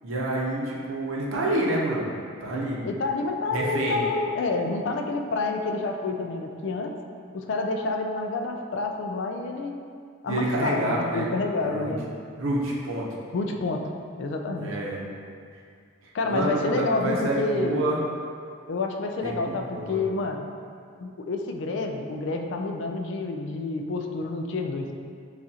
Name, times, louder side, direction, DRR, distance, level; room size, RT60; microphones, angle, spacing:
voice 1, 0.0-2.1 2.4-2.8 3.5-4.0 10.2-11.3 11.6-11.9 12.4-13.1 14.6-15.0 16.2-18.0 19.2-20.0, right 1 dB, 80° right, -3 dB, 0.8 m, -28 dB
voice 2, 2.8-6.9 7.3-9.8 10.2-12.1 13.3-13.8 14.1-14.7 16.1-17.8 18.7-20.5 21.0-25.0, left 3 dB, 60° left, 3 dB, 0.3 m, -28 dB
6.9 x 2.4 x 2.8 m, 2.2 s
head